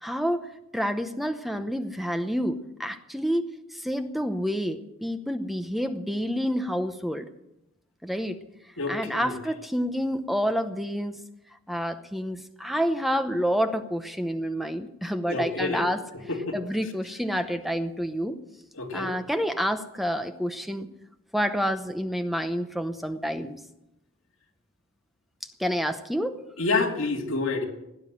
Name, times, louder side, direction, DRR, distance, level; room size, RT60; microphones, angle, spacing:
voice 1, 0.0-7.3 8.0-8.4 8.9-11.2 11.7-16.0 16.5-18.4 18.9-20.9 21.3-23.6 25.4-26.4, equal, ahead, 8 dB, 0.8 m, -28 dB
voice 2, 8.8-9.3 15.3-15.8 16.3-16.6 18.7-19.2 26.6-27.7, left 3 dB, 65° left, 3 dB, 2.3 m, -28 dB
17.5 x 9.8 x 7.6 m, 0.89 s
head